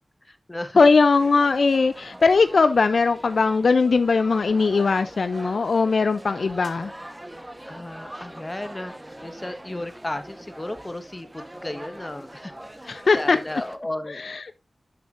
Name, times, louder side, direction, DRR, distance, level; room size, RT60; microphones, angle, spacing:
voice 1, 0.2-0.8 7.7-8.9 9.2-12.5 12.8-14.2, left 1 dB, 25° left, 1.4 m, -34 dB
voice 2, 0.8-6.9 12.9-13.4 14.2-14.6, left 4 dB, 80° left, 0.5 m, -20 dB
sound 1, 1.1-13.8, right 1 dB, 20° right, 1.2 m, -42 dB
11.5 x 6.9 x 2.6 m
wide cardioid pair, 55°, 0 cm